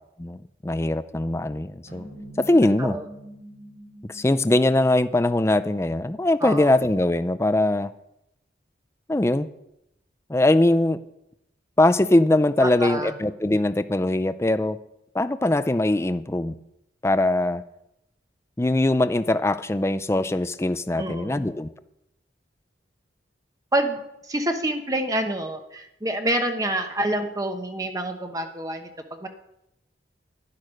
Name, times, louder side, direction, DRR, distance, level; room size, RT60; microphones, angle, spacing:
voice 1, 0.6-2.1 2.4-3.0 4.1-7.9 9.1-9.5 10.3-11.0 11.8-14.8 15.1-16.5 17.0-17.6 18.6-21.7, left 1 dB, 15° left, 12 dB, 0.4 m, -21 dB
sound 1, 1.9-6.5, right 1 dB, 60° right, 5.9 m, -44 dB
voice 2, 12.6-13.1 21.0-21.4 23.7-29.3, right 1 dB, 20° right, 5 dB, 1.1 m, -27 dB
11.5 x 11.0 x 6.4 m, 0.83 s
head